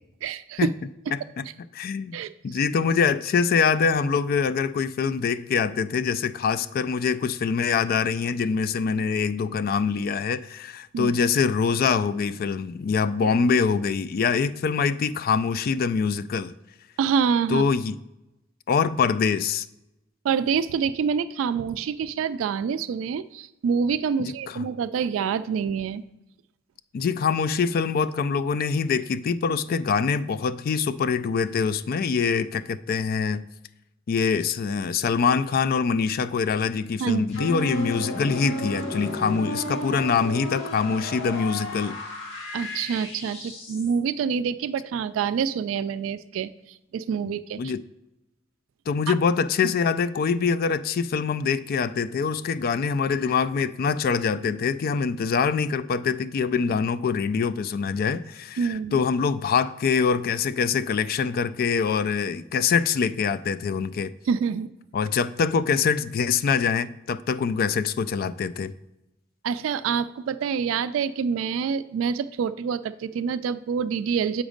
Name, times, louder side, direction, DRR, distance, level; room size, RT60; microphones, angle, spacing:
voice 1, 0.2-0.7 2.1-2.3 10.9-11.1 13.2-13.3 17.0-17.6 20.2-26.0 37.0-37.5 42.5-46.5 46.9-47.6 49.1-49.2 49.6-49.7 58.6-59.0 64.3-64.7 69.4-74.4, right 6 dB, 80° right, 0.3 m, -26 dB
voice 2, 1.1-1.5 1.7-16.5 17.5-18.0 18.7-19.7 24.2-24.7 26.9-33.4 34.1-42.0 47.6-47.8 48.9-64.1 64.9-68.7, left 5 dB, 50° left, 0.3 m, -24 dB
sound 1, 37.3-44.0, left 1 dB, 75° left, 1.8 m, -33 dB
7.2 x 5.0 x 5.1 m
head